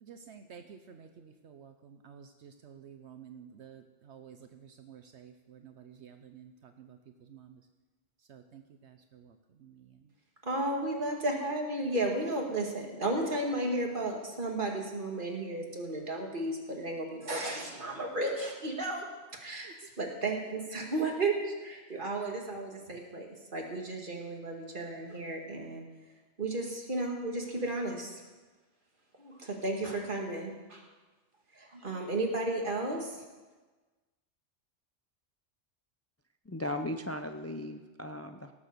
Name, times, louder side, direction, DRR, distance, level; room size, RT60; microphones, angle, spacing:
voice 1, 0.0-7.0 7.3-7.6 8.3-9.3 9.6-9.9 19.6-19.7, right 7 dB, 70° right, 7 dB, 1.0 m, -52 dB
voice 2, 10.4-19.1 19.3-19.7 20.0-25.9 26.4-28.2 29.2-30.8 31.5-33.2, right 2 dB, 45° right, 1 dB, 2.2 m, -33 dB
voice 3, 36.5-38.5, left 1 dB, 20° left, 6 dB, 0.4 m, -37 dB
18.0 x 7.3 x 6.7 m, 1.3 s
omnidirectional pair, 1.2 m